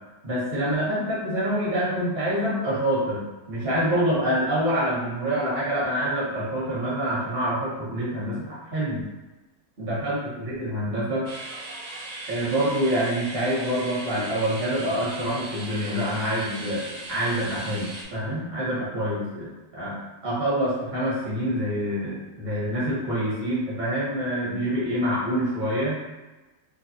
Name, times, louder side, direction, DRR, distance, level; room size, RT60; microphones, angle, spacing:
voice 1, 0.2-9.0 9.8-11.3 12.3-20.0 20.2-26.0, equal, 40° right, -8 dB, 1.1 m, -26 dB
sound 1, 11.3-18.1, right 2 dB, 80° right, 1.2 m, -38 dB
2.8 x 2.3 x 2.6 m, 1.1 s
omnidirectional pair, 1.8 m